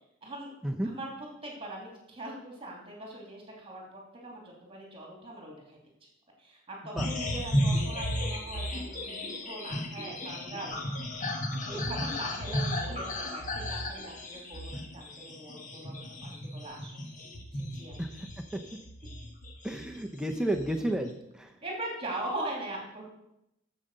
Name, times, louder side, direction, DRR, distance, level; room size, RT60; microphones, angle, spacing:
voice 1, 0.2-0.5 0.8-1.1 1.4-5.8 6.4-10.8 11.6-15.9 16.2-16.9 17.5-18.0 21.6-23.1, right 2 dB, 25° right, -1 dB, 2.9 m, -41 dB
sound 1, 7.0-20.0 20.3-21.1, left 1 dB, 40° left, 1.5 m, -34 dB
voice 2, 19.6-21.5, right 1 dB, 5° right, 4 dB, 0.7 m, -32 dB
9.1 x 7.5 x 6.7 m, 0.83 s
head